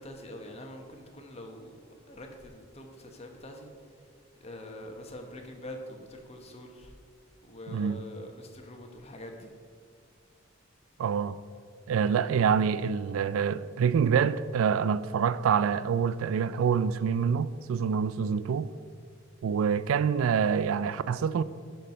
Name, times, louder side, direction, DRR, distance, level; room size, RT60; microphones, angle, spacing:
voice 1, 0.0-1.7 2.1-3.7 4.4-6.9 7.4-9.5, left 1 dB, 30° left, 1.0 m, -44 dB
voice 2, 7.7-8.0 11.0-11.4 11.9-18.7 19.4-21.4, right 7 dB, 90° right, 0.3 m, -26 dB
11.5 x 4.6 x 5.3 m
head